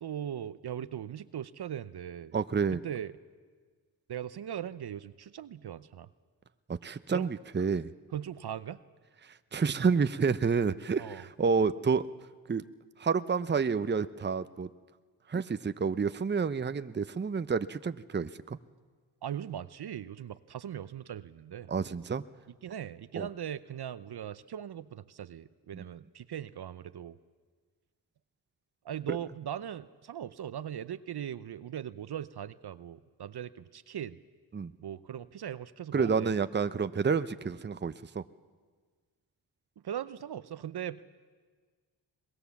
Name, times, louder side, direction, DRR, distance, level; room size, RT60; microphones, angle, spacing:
voice 1, 0.0-2.3 2.7-3.2 4.1-6.1 7.1-7.3 8.1-8.8 11.0-11.2 19.2-21.7 22.6-27.2 28.8-34.2 34.8-36.3 39.8-41.0, right 10 dB, 55° right, 14 dB, 0.8 m, -39 dB
voice 2, 2.3-2.8 6.7-7.9 9.2-12.1 12.5-12.6 13.0-14.7 15.3-18.6 21.7-22.2 23.1-23.3 25.7-25.8 29.1-29.2 34.5-34.7 35.9-38.2, right 5 dB, 25° right, 12 dB, 0.7 m, -29 dB
22.5 x 20.0 x 7.2 m, 1.5 s
supercardioid pair, 45°, 46 cm